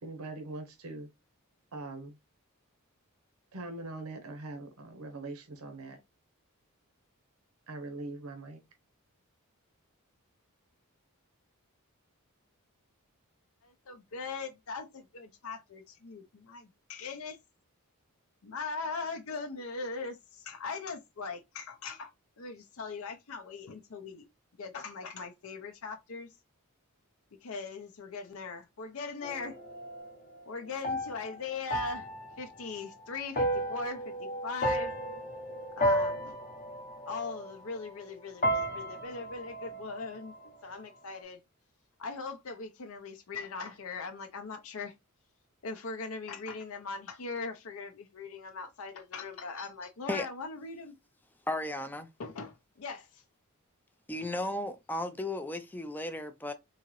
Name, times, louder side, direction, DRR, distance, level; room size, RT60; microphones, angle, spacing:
voice 1, 0.0-1.1 1.7-2.2 3.5-6.0 7.7-8.6, right 2 dB, 70° right, 0.8 m, -42 dB
voice 2, 13.6-17.4 18.4-22.1 22.4-24.3 24.6-26.3 27.4-29.6 30.5-32.1 32.4-34.9 35.8-36.4 37.1-41.4 42.0-44.9 45.6-51.0 52.2-53.2, left 4 dB, 65° left, 0.6 m, -40 dB
sound 1, 29.2-38.1 38.4-40.5, equal, 35° left, 0.8 m, -34 dB
voice 3, 51.5-52.1 54.1-56.5, left 1 dB, 10° left, 0.3 m, -35 dB
3.8 x 2.7 x 3.0 m
head